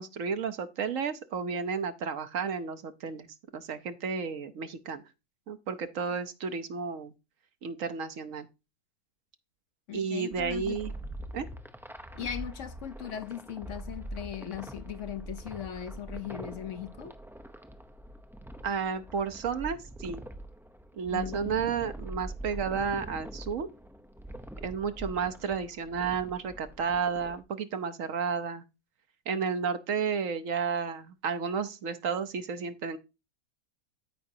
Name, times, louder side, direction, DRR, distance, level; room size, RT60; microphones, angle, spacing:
voice 1, 0.0-3.3 3.5-5.0 5.5-7.1 7.6-8.5 9.9-10.9 11.3-11.5 12.2-12.3 18.6-20.2 20.9-23.7 24.6-28.6 29.3-33.0, right 6 dB, 65° right, 1.2 m, -32 dB
voice 2, 9.9-10.8 12.1-17.1 21.1-21.7, left 10 dB, 60° left, 1.0 m, -39 dB
sound 1, 10.3-27.4, right 1 dB, 5° right, 0.3 m, -43 dB
13.5 x 4.9 x 2.7 m
omnidirectional pair, 1.6 m